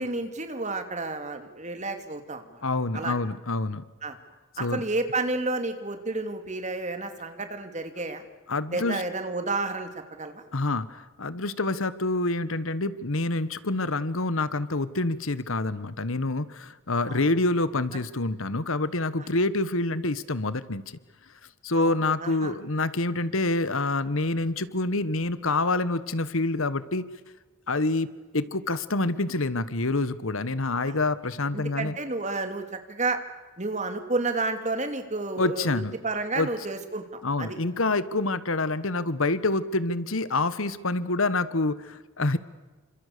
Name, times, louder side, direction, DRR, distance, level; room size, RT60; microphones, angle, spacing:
voice 1, 0.0-2.6 2.9-3.1 4.0-4.2 4.6-8.2 8.7-9.9 10.2-10.4 17.1-17.2 21.7-21.9 22.2-22.5 30.9-31.0 31.5-33.2 33.6-35.7 36.0-37.0 37.4-37.6, right 3 dB, 35° right, 7 dB, 2.8 m, -31 dB
voice 2, 2.6-3.8 4.6-4.8 8.5-9.0 10.5-21.0 21.6-27.0 27.7-32.0 35.4-35.9 36.3-36.5 37.2-42.4, left 2 dB, 70° left, 15 dB, 1.4 m, -27 dB
29.5 x 26.0 x 6.9 m, 1.2 s
head